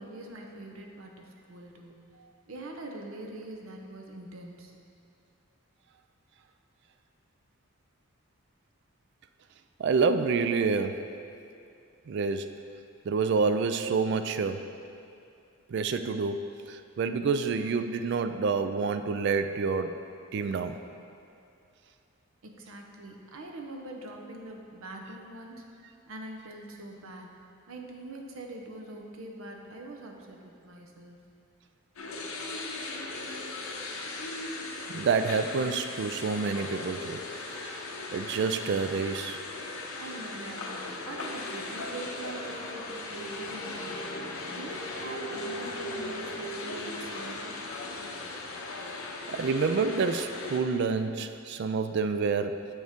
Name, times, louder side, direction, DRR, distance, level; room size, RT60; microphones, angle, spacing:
voice 1, 0.0-2.0 2.5-4.7 22.4-25.7 26.1-27.3 27.7-31.2 40.0-44.0 44.5-47.6, right 2 dB, 75° right, 2 dB, 0.8 m, -43 dB
voice 2, 9.8-11.1 12.1-12.5 13.1-14.7 15.7-20.0 20.3-20.8 34.9-37.2 37.6-37.8 38.1-39.4 49.3-52.7, right 4 dB, 55° right, 9 dB, 0.3 m, -28 dB
sound 1, 32.0-50.6, left 2 dB, 75° left, 0.8 m, -38 dB
7.0 x 6.3 x 3.6 m, 2.5 s
head